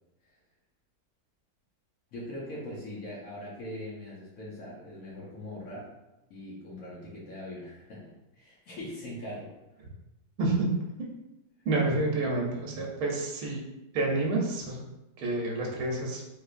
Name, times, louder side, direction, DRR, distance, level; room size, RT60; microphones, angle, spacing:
voice 1, 2.1-5.9 6.3-9.5 12.7-12.8, left 1 dB, 65° left, -7 dB, 1.2 m, -41 dB
voice 2, 11.7-13.6 13.9-14.8 15.2-16.2, right 2 dB, 85° right, -1 dB, 1.2 m, -28 dB
3.1 x 3.1 x 2.4 m, 0.94 s
omnidirectional pair, 1.6 m